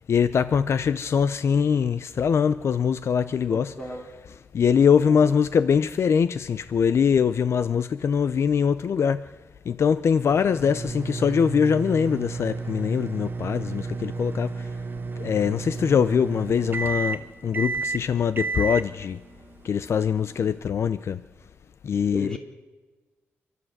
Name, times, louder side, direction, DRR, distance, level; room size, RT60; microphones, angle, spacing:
voice 1, 0.1-3.9 4.5-9.2 9.7-14.7 15.2-19.2 19.6-21.2 21.8-22.4, left 7 dB, 65° left, 0.6 m, -23 dB
voice 2, 3.4-4.2 5.1-5.4 22.1-22.4, left 1 dB, 15° left, 4.0 m, -37 dB
sound 1, 10.3-20.6, right 4 dB, 45° right, 1.3 m, -32 dB
30.0 x 12.5 x 7.9 m
cardioid pair, 95°, 5 cm